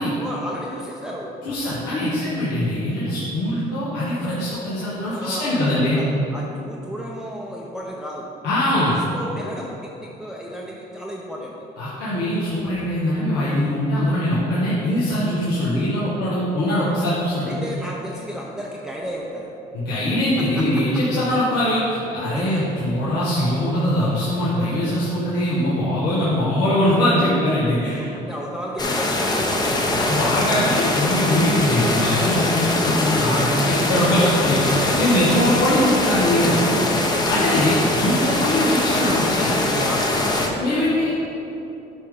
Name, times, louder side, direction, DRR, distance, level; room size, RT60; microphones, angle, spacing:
voice 1, 0.2-1.3 5.0-6.0 6.3-8.3 8.7-11.7 17.5-19.5 20.4-20.8 22.3-22.4 27.9-30.3 36.3-37.8 39.4-41.1, equal, 5° right, -3 dB, 0.7 m, -34 dB
voice 2, 1.5-6.0 8.4-9.0 11.8-17.5 19.7-28.1 30.1-36.5 37.3-39.5 40.6-41.1, left 1 dB, 75° left, -9 dB, 1.7 m, -22 dB
sound 1, 28.8-40.5, left 2 dB, 25° left, 0.9 m, -22 dB
8.9 x 5.5 x 3.8 m, 2.9 s
cardioid pair, 110°, 17 cm